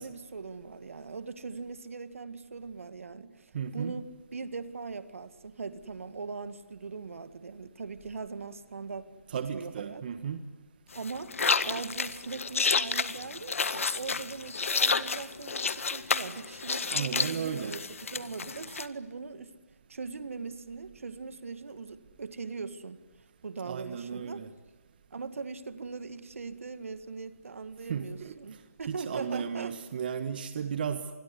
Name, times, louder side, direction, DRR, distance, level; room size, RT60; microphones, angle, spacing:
voice 1, 0.0-10.0 10.9-11.3 11.6-17.8 18.1-19.5 19.9-23.0 23.4-24.4 25.1-29.8, right 4 dB, 60° right, 13 dB, 2.0 m, -40 dB
voice 2, 3.5-4.0 9.3-10.4 16.8-17.8 23.6-24.5 27.9-28.3 28.9-31.1, right 7 dB, 35° right, 10 dB, 1.4 m, -34 dB
sound 1, 10.9-18.9, left 5 dB, 60° left, 1.7 m, -30 dB
26.5 x 21.5 x 9.8 m, 1.2 s
figure-of-eight pair, 155°, 8 cm